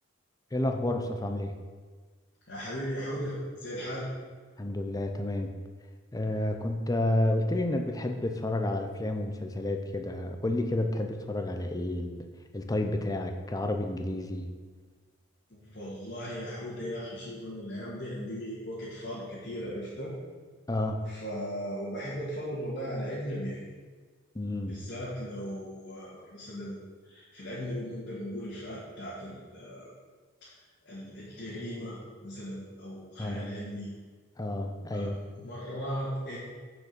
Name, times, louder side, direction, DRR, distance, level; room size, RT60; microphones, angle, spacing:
voice 1, 0.5-1.5 4.6-5.5 6.1-12.3 12.5-14.5 20.7-21.0 24.3-24.8 33.2-33.5 34.4-35.1, left 1 dB, 20° left, 5 dB, 0.6 m, -30 dB
voice 2, 2.5-4.1 15.5-20.1 21.0-23.6 24.6-29.9 30.4-30.5 30.8-33.9 34.9-36.4, equal, 55° left, -8 dB, 1.9 m, -37 dB
6.6 x 5.2 x 6.8 m, 1.5 s
head